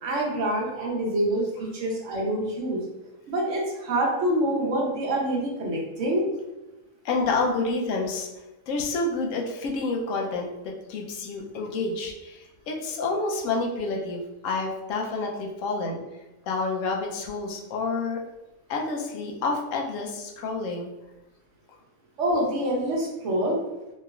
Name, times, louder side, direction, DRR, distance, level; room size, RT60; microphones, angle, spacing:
voice 1, 0.0-2.8 3.3-6.3 22.2-23.6, right 1 dB, 60° right, -2 dB, 1.0 m, -26 dB
voice 2, 7.0-8.3 8.7-12.4 12.7-16.0 16.5-18.2 18.7-20.9, left 3 dB, 70° left, 0 dB, 0.9 m, -28 dB
3.1 x 3.0 x 2.3 m, 1.0 s
omnidirectional pair, 1.5 m